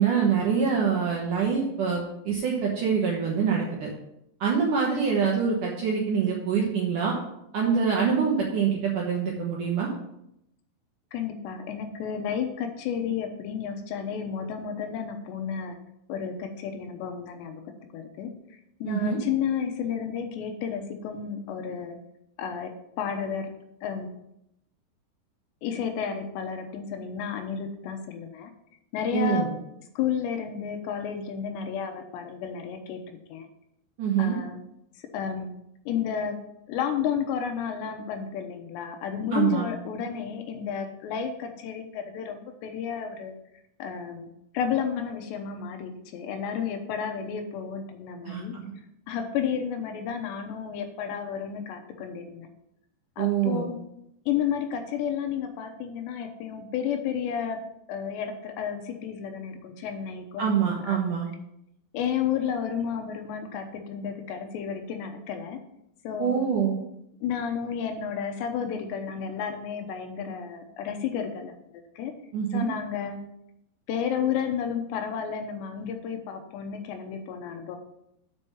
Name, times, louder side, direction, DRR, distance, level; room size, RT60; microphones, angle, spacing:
voice 1, 0.0-3.9 4.4-7.1 7.5-9.9 18.9-19.2 29.1-29.5 34.0-34.4 39.3-39.7 48.3-48.6 53.2-53.7 60.4-61.3 66.2-66.8 72.3-72.7, right 6 dB, 70° right, -2 dB, 2.0 m, -25 dB
voice 2, 11.1-15.8 16.1-17.6 17.9-18.3 18.8-22.0 22.4-22.7 23.0-23.5 23.8-24.1 25.6-28.5 28.9-29.5 30.0-33.5 34.2-34.6 35.1-35.5 35.9-36.4 36.7-43.3 43.8-48.5 49.1-52.5 53.2-53.7 54.3-57.6 57.9-61.0 61.9-65.6 66.0-66.4 67.2-72.1 72.5-73.2 73.9-77.8, left 7 dB, 85° left, 5 dB, 3.0 m, -32 dB
6.9 x 5.4 x 7.1 m, 0.79 s
omnidirectional pair, 5.1 m